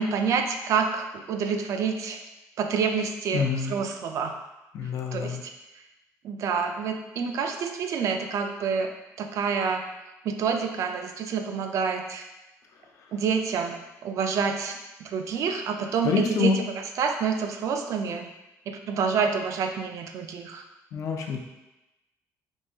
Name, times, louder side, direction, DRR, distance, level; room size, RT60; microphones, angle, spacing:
voice 1, 0.0-2.2 2.6-4.3 5.1-5.5 6.2-8.9 9.2-9.9 10.2-12.3 13.1-13.8 14.0-18.3 18.7-20.6, right 6 dB, 55° right, 5 dB, 0.4 m, -28 dB
voice 2, 3.3-3.7 4.7-5.4 16.0-16.6 20.9-21.4, left 5 dB, 60° left, 2 dB, 0.5 m, -26 dB
3.6 x 3.0 x 2.7 m, 0.98 s
cardioid pair, 140°, 6 cm